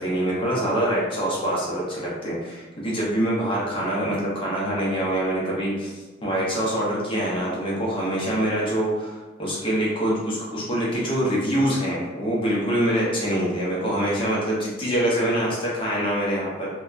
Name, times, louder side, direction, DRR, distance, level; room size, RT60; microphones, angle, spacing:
voice 1, 0.0-16.7, right 1 dB, 25° left, -6 dB, 0.6 m, -25 dB
2.6 x 2.2 x 2.4 m, 1.2 s
head